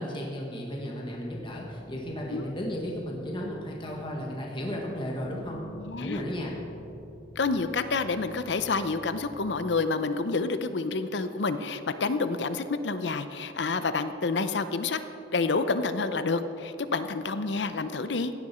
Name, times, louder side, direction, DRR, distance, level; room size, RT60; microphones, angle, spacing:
voice 1, 0.0-5.6 6.0-6.5, equal, 30° left, -1 dB, 1.6 m, -34 dB
sound 1, 1.1-9.7, left 1 dB, 85° left, 2.8 m, -48 dB
voice 2, 5.8-6.2 7.4-15.0 15.3-18.3, left 4 dB, 70° left, 11 dB, 0.7 m, -28 dB
16.0 x 10.5 x 4.4 m, 2.8 s
head